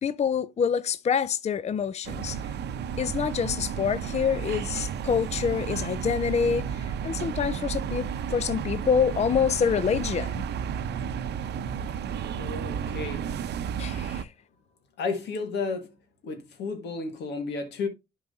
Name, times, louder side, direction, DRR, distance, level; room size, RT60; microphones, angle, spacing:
voice 1, 0.0-2.4 3.0-6.7 7.0-10.4 13.8-14.3, left 7 dB, 40° left, 0.5 m, -26 dB
sound 1, 2.0-14.2, right 7 dB, 80° right, 0.6 m, -32 dB
voice 2, 12.3-13.3 15.0-15.9 16.2-17.9, left 4 dB, 90° left, 1.7 m, -32 dB
11.0 x 4.7 x 2.7 m
cardioid pair, 75°, 17 cm